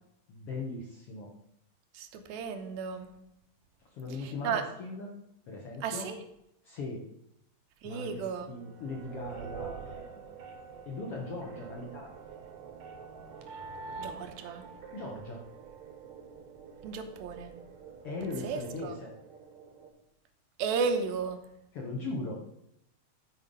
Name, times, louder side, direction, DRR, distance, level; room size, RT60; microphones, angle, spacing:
voice 1, 0.3-1.3 3.9-5.1 5.5-6.1 6.6-7.0 7.8-8.2 8.5-10.2 10.8-12.3 14.9-15.4 18.0-19.1 21.7-22.3, left 3 dB, 60° left, -1 dB, 1.6 m, -39 dB
voice 2, 1.9-3.1 4.1-4.6 5.8-6.2 7.8-8.5 14.0-14.6 16.8-17.5 18.4-18.9 20.6-21.4, right 5 dB, 85° right, 6 dB, 2.7 m, -34 dB
sound 1, 8.6-19.9, right 5 dB, 65° right, 2.0 m, -46 dB
11.5 x 4.9 x 5.4 m, 0.78 s
omnidirectional pair, 4.2 m